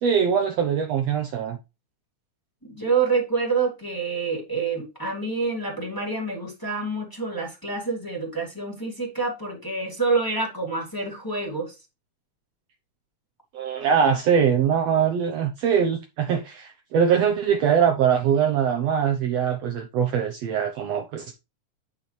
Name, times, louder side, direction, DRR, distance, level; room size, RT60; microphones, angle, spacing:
voice 1, 0.0-1.6 13.5-21.3, right 7 dB, 65° right, 1.8 m, -22 dB
voice 2, 2.6-11.7, right 4 dB, 5° left, 2.6 m, -27 dB
9.2 x 5.9 x 3.3 m
omnidirectional pair, 3.6 m